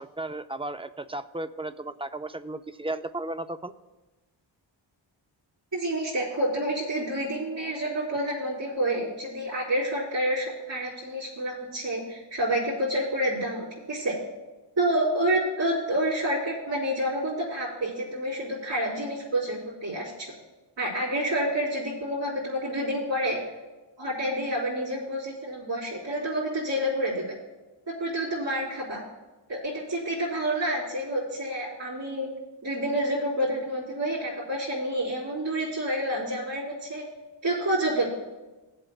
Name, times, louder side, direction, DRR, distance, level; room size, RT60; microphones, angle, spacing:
voice 1, 0.0-3.7, right 2 dB, 15° right, 11 dB, 0.3 m, -34 dB
voice 2, 5.7-14.2 14.8-20.3 20.8-23.4 24.0-27.2 27.9-29.0 29.5-32.3 32.6-37.0 37.4-38.0, right 1 dB, 70° right, -11 dB, 3.7 m, -28 dB
19.5 x 7.7 x 2.3 m, 1.2 s
wide cardioid pair, 85°, 45 cm